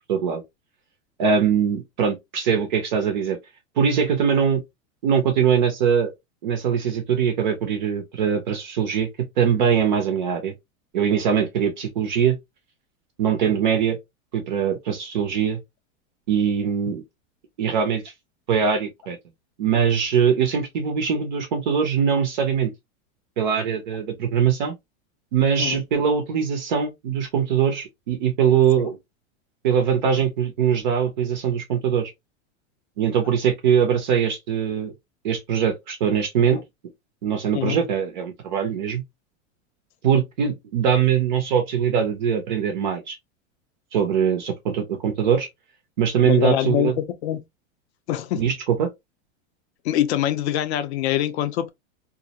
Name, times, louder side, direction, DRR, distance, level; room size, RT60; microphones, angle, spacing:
voice 1, 0.1-0.4 1.2-3.4 3.8-4.6 5.0-6.1 6.4-9.1 9.4-10.5 10.9-12.4 13.2-14.0 14.3-15.6 16.3-17.0 17.6-18.0 18.5-19.2 19.6-22.7 23.4-24.7 25.3-29.0 29.6-32.1 33.0-34.9 35.2-36.6 37.2-39.0 40.0-43.2 43.9-45.5 46.0-46.9 48.3-48.9, right 7 dB, 40° right, 0.4 m, -22 dB
voice 2, 46.2-47.4 48.1-48.5 49.8-51.7, left 12 dB, 55° left, 0.5 m, -24 dB
2.4 x 2.0 x 2.6 m
supercardioid pair, 175°, 40 cm